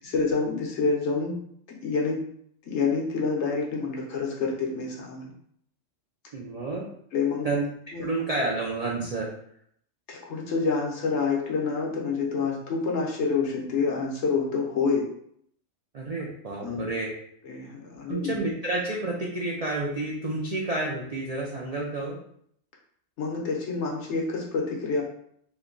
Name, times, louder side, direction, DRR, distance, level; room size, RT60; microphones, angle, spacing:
voice 1, 0.0-1.3 1.8-2.2 2.7-5.3 7.1-7.5 7.9-8.0 10.1-15.1 16.6-16.9 17.4-18.4 23.2-25.0, left 4 dB, 70° left, -1 dB, 1.1 m, -27 dB
voice 2, 6.3-6.9 7.4-7.6 8.0-9.3 15.9-17.1 18.1-22.2, right 2 dB, 60° right, -3 dB, 0.4 m, -30 dB
3.1 x 2.2 x 3.7 m, 0.67 s
omnidirectional pair, 1.3 m